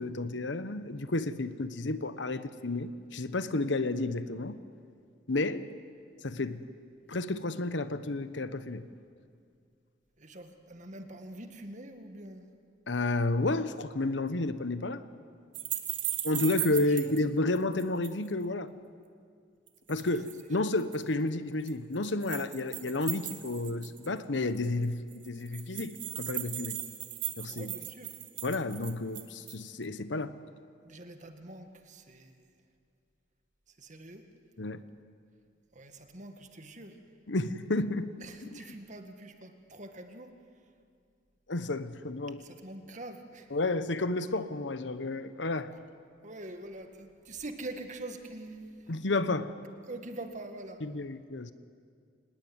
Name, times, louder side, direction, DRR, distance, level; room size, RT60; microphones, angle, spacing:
voice 1, 0.0-4.6 5.3-5.7 6.2-6.6 7.1-8.9 12.9-15.0 16.2-18.7 19.9-26.8 27.4-27.7 28.4-30.3 34.6-34.8 37.3-38.1 38.4-38.8 41.5-42.4 43.5-45.7 48.9-49.5 50.8-51.5, left 2 dB, 75° left, 13 dB, 1.1 m, -31 dB
voice 2, 10.2-12.5 17.0-17.2 20.6-20.7 27.5-28.1 30.8-32.5 33.8-34.2 35.7-37.0 38.2-40.3 42.4-43.5 46.2-48.7 49.9-50.8, right 2 dB, 40° right, 6 dB, 1.9 m, -44 dB
sound 1, 15.5-17.2 17.6-18.3 19.7-20.4 20.8-21.0 21.7-24.2 24.6-24.7 24.8-24.9 25.1-29.7, right 13 dB, 80° right, 2.0 m, -37 dB
25.0 x 19.5 x 9.6 m, 2.2 s
head